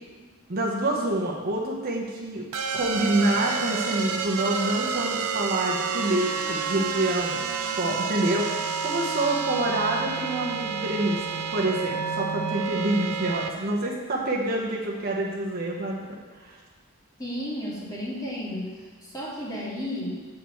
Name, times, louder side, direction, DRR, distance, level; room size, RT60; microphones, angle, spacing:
voice 1, 0.5-2.4 2.7-7.4 7.8-16.6, right 1 dB, 45° right, -3 dB, 1.2 m, -27 dB
sound 1, 2.5-13.5, right 6 dB, 85° right, 0.7 m, -29 dB
voice 2, 17.2-20.1, equal, 15° left, -7 dB, 2.7 m, -33 dB
8.4 x 4.7 x 7.0 m, 1.5 s
head